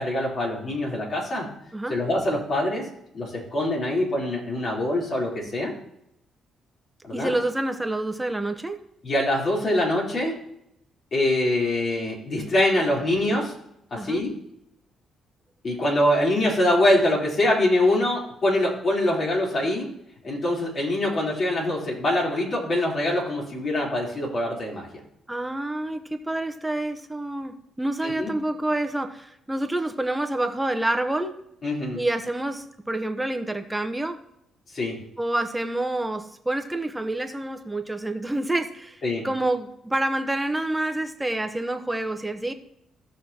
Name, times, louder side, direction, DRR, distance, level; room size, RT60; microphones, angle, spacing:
voice 1, 0.0-1.5 1.9-2.8 3.1-5.7 7.0-7.3 9.0-10.3 11.1-13.5 13.9-14.3 15.6-19.9 20.2-24.9 28.0-28.3 31.6-32.0 34.7-35.0 39.0-39.3, left 1 dB, 50° left, -2 dB, 3.5 m, -24 dB
voice 2, 7.1-8.8 13.9-14.2 25.3-31.3 31.9-34.2 35.2-42.5, right 1 dB, 10° right, 7 dB, 0.9 m, -28 dB
16.0 x 6.3 x 2.9 m, 0.78 s
cardioid pair, 90°, 0 cm